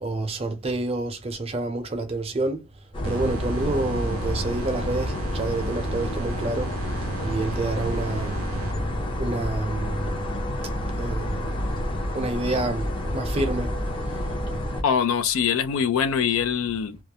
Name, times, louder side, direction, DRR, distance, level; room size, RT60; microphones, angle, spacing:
voice 1, 0.0-2.6 3.0-6.7 7.2-8.4 9.2-10.1 11.0-11.5 12.1-12.9 13.1-13.7, right 2 dB, 30° right, 0.5 m, -28 dB
sound 1, 2.9-14.8, left 1 dB, 25° left, 0.5 m, -29 dB
sound 2, 3.0-9.1, right 5 dB, 80° right, 0.4 m, -36 dB
voice 2, 14.8-17.0, left 7 dB, 85° left, 0.4 m, -23 dB
2.3 x 2.0 x 2.8 m
head